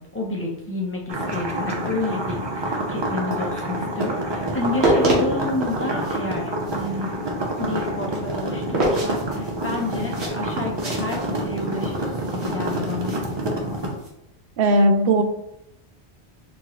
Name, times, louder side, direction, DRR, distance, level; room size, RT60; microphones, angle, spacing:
voice 1, 0.0-7.1 7.6-13.2, left 2 dB, 15° left, -1 dB, 0.7 m, -30 dB
sound 1, 1.1-14.0, right 1 dB, 35° right, 0.5 m, -28 dB
sound 2, 4.5-14.1, right 1 dB, 85° right, 1.4 m, -28 dB
voice 2, 14.6-15.2, right 1 dB, 65° right, 6 dB, 0.7 m, -17 dB
4.4 x 2.9 x 3.0 m, 0.81 s
omnidirectional pair, 1.1 m